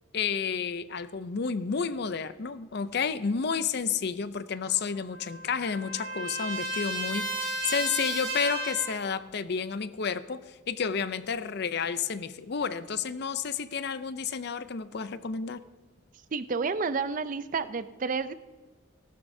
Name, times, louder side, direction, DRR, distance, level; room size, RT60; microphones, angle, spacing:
voice 1, 0.1-15.6, left 6 dB, 50° left, 13 dB, 0.5 m, -31 dB
Trumpet, 4.6-9.0, right 1 dB, 60° right, 3.0 m, -34 dB
voice 2, 16.3-18.3, right 4 dB, 40° right, 13 dB, 0.4 m, -30 dB
18.5 x 12.0 x 2.7 m, 1.3 s
head